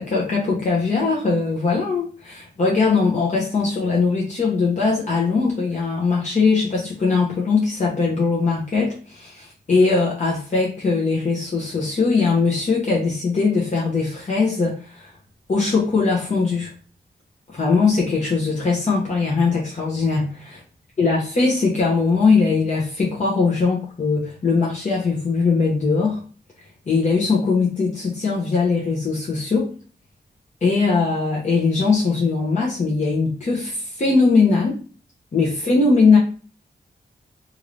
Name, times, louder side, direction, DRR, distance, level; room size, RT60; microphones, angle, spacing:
voice 1, 0.0-15.1 15.5-16.7 17.5-20.6 21.0-26.2 26.9-29.7 30.6-34.8 35.3-36.2, left 4 dB, 45° left, -4 dB, 0.8 m, -20 dB
2.8 x 2.5 x 3.1 m, 0.39 s
cardioid pair, 65°, 17 cm